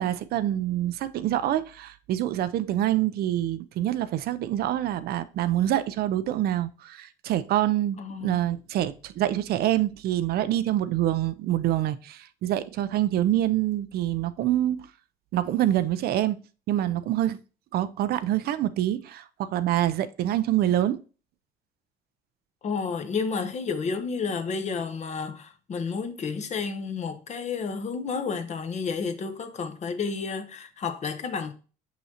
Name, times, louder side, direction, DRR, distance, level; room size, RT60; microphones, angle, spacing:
voice 1, 0.0-14.9 15.3-17.4 17.7-21.0, right 12 dB, 65° right, 0.5 m, -26 dB
voice 2, 8.0-8.4 22.6-31.5, left 5 dB, 45° left, 0.9 m, -31 dB
6.3 x 5.6 x 2.8 m
cardioid pair, 110°, 17 cm